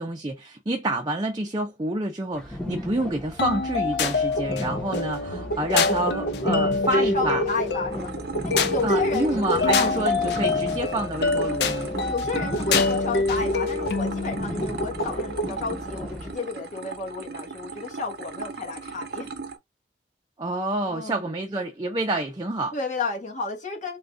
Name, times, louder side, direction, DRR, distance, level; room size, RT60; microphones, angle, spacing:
voice 1, 0.0-7.4 8.8-11.9 20.4-22.7, right 1 dB, 25° right, 0.5 m, -28 dB
sound 1, 2.3-16.4, left 1 dB, 5° left, 0.8 m, -36 dB
sound 2, 3.4-15.5, left 3 dB, 65° left, 0.5 m, -25 dB
voice 2, 6.9-8.1 8.4-10.4 12.1-19.3 20.9-21.3 22.7-24.0, left 4 dB, 45° left, 1.1 m, -32 dB
sound 3, 7.9-19.6, right 4 dB, 60° right, 0.7 m, -38 dB
3.5 x 2.3 x 3.5 m
head